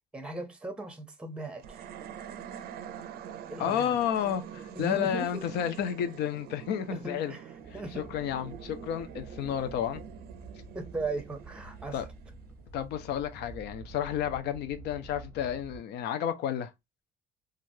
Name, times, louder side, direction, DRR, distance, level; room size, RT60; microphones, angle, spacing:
voice 1, 0.1-1.8 3.5-4.1 4.7-5.4 6.9-8.1 8.4-8.5 10.7-12.1, right 2 dB, 5° right, 0.6 m, -38 dB
sound 1, 1.6-13.0, right 9 dB, 65° right, 0.5 m, -46 dB
voice 2, 3.6-7.3 8.0-10.0 11.9-12.1 12.7-16.7, left 9 dB, 80° left, 0.5 m, -31 dB
Animal, 7.6-15.8, right 3 dB, 10° left, 1.0 m, -49 dB
3.1 x 2.4 x 2.6 m
cardioid pair, 110°, 17 cm